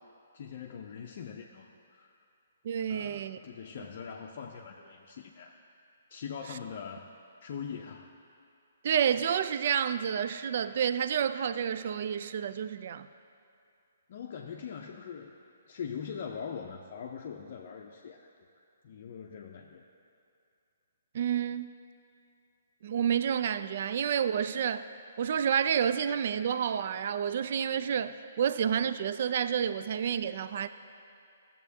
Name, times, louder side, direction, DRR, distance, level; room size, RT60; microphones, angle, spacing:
voice 1, 0.3-2.2 2.9-5.6 6.1-7.1 7.4-8.1 14.1-15.3 15.7-18.3 18.8-19.9, left 7 dB, 50° left, 1 dB, 0.5 m, -42 dB
voice 2, 2.6-3.4 8.8-13.1 21.1-21.7 22.8-24.9 25.2-30.7, right 8 dB, 50° right, 12 dB, 0.3 m, -29 dB
15.5 x 7.2 x 2.8 m, 2.5 s
figure-of-eight pair, 130°, 0 cm